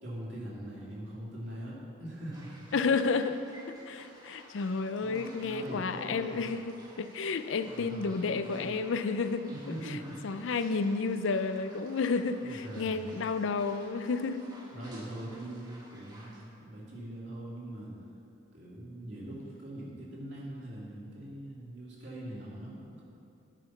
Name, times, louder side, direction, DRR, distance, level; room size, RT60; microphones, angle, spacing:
voice 1, 0.0-2.7 5.0-6.5 7.6-8.9 9.5-10.5 12.4-13.3 14.7-17.9 18.5-23.0, right 1 dB, 60° right, -6 dB, 2.3 m, -42 dB
sound 1, 2.3-16.4, right 1 dB, 20° right, 1.1 m, -54 dB
voice 2, 2.7-10.0 10.2-14.5, left 4 dB, 70° left, 11 dB, 0.4 m, -31 dB
10.0 x 5.7 x 5.9 m, 2.7 s
head